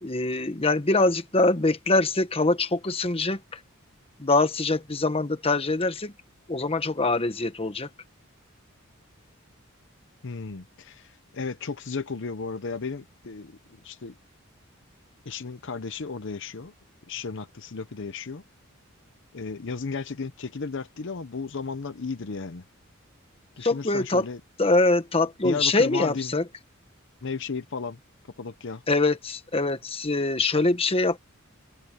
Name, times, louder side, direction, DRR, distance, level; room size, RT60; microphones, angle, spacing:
voice 1, 0.0-3.6 4.2-6.1 6.5-7.9 23.6-24.2 24.6-26.4 28.9-31.2, left 2 dB, 25° left, 1.2 m, -24 dB
voice 2, 10.2-14.1 15.3-16.7 17.1-18.4 19.3-22.6 23.6-24.4 25.4-26.4 27.2-28.0 28.4-28.8, left 4 dB, 60° left, 0.8 m, -34 dB
head